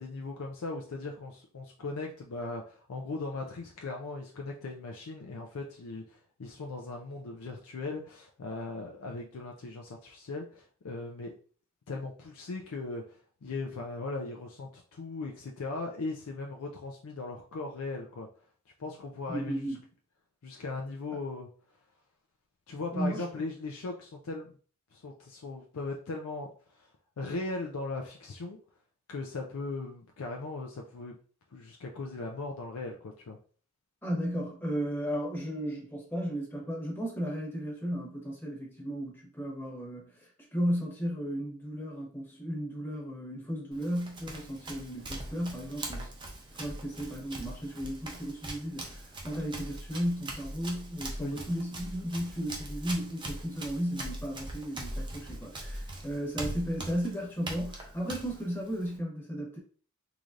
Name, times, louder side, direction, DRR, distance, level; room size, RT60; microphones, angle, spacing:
voice 1, 0.0-11.3 11.9-18.3 18.8-19.6 20.4-21.5 22.7-24.6 24.9-26.9 27.2-28.6 29.1-31.2 31.5-33.4 51.2-51.5, left 3 dB, 85° left, 1 dB, 0.5 m, -38 dB
voice 2, 19.3-19.8 22.9-23.3 34.0-46.1 46.5-59.6, equal, 10° left, -2 dB, 1.1 m, -34 dB
Run, 43.7-59.0, right 1 dB, 20° right, 0.6 m, -41 dB
3.9 x 3.1 x 2.5 m, 0.42 s
head